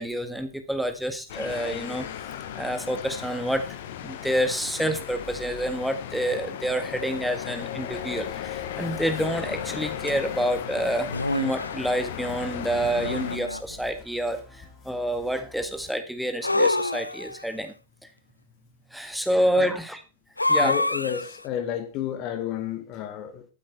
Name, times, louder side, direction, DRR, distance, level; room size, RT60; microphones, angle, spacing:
voice 1, 0.0-2.1 2.6-17.7 18.9-20.0 20.5-20.7, equal, ahead, 1.7 m, -28 dB
sound 1, 1.3-13.4, left 10 dB, 55° left, 1.5 m, -36 dB
sound 2, 7.9-15.9, left 5 dB, 25° left, 4.4 m, -49 dB
sound 3, 10.1-10.2 11.1-11.8 13.0-13.8 16.4-17.5 20.4-21.4, left 2 dB, 85° left, 0.6 m, -26 dB
voice 2, 20.5-23.5, left 10 dB, 40° left, 1.9 m, -31 dB
13.0 x 8.4 x 4.6 m
figure-of-eight pair, 90°, 0 cm